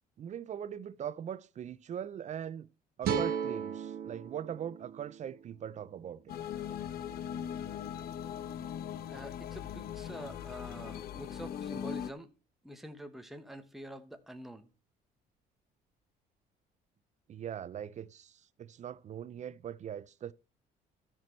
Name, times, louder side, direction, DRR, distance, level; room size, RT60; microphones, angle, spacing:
voice 1, 0.2-2.7 3.0-6.3 17.3-20.3, right 9 dB, 45° right, 0.6 m, -41 dB
sound 1, 3.0-6.2, right 7 dB, 65° right, 1.9 m, -36 dB
sound 2, 6.3-12.1, left 9 dB, 65° left, 0.9 m, -40 dB
voice 2, 9.0-12.3 12.6-14.7, right 1 dB, ahead, 1.3 m, -46 dB
14.0 x 6.1 x 4.5 m
cardioid pair, 110°, 17 cm